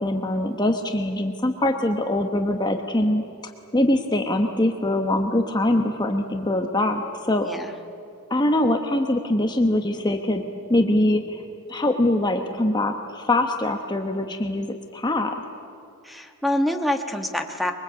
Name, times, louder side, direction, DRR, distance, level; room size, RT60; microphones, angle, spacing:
voice 1, 0.0-3.2 3.7-7.5 8.3-10.4 10.7-11.4 11.7-15.4, left 1 dB, 20° left, 4 dB, 1.1 m, -23 dB
voice 2, 16.0-17.7, left 1 dB, ahead, 5 dB, 1.4 m, -26 dB
24.5 x 23.5 x 8.3 m, 2.5 s
head